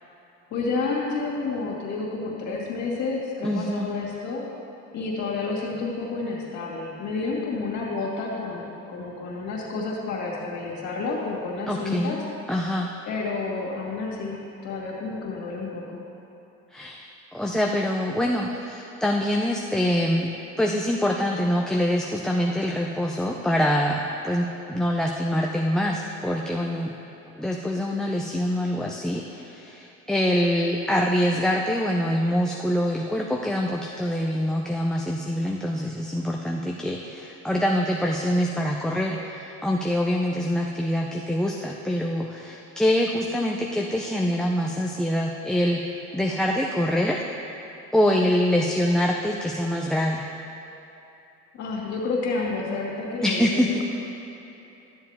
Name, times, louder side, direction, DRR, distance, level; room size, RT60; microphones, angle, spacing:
voice 1, 0.5-4.4 4.9-12.2 13.0-16.0 51.5-53.8, left 3 dB, 70° left, -3 dB, 2.3 m, -30 dB
voice 2, 3.4-4.0 11.7-12.2 12.5-12.9 16.7-20.3 20.6-26.9 27.3-47.2 47.9-50.3 53.2-53.8, equal, ahead, -1 dB, 0.5 m, -25 dB
12.5 x 7.4 x 3.5 m, 3.0 s
cardioid pair, 105°, 29 cm